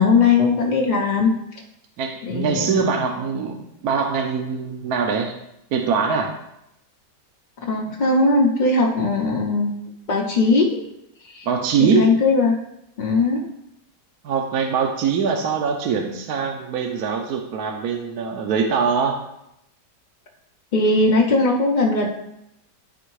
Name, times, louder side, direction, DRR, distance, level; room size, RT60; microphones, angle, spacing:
voice 1, 0.0-1.3 2.2-2.8 7.6-9.8 10.1-10.8 11.3-11.5 11.8-12.6 13.0-13.4 20.7-22.1, left 3 dB, 50° left, -2 dB, 0.5 m, -19 dB
voice 2, 2.0-5.3 5.7-6.3 11.5-12.1 14.2-19.2, right 6 dB, 65° right, 3 dB, 1.2 m, -23 dB
10.5 x 3.5 x 4.7 m, 0.82 s
omnidirectional pair, 1.8 m